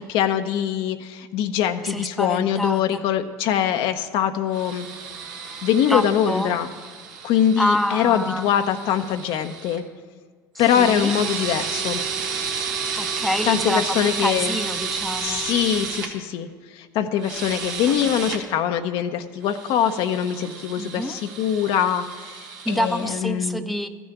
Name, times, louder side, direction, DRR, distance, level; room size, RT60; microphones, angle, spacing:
voice 1, 0.1-4.9 5.6-6.7 7.2-9.8 10.6-12.0 13.1-14.6 15.2-23.6, left 9 dB, 65° left, 7 dB, 0.8 m, -23 dB
voice 2, 1.8-3.0 5.9-6.5 7.6-8.5 10.5-11.1 13.0-15.4 17.9-18.0 20.8-21.2 22.6-23.9, equal, ahead, 7 dB, 0.7 m, -27 dB
sound 1, 4.5-9.8 10.6-16.1 17.2-18.4 19.4-23.1, right 5 dB, 85° right, 1.4 m, -32 dB
13.5 x 6.2 x 9.0 m, 1.5 s
hypercardioid pair, 75°, 10 cm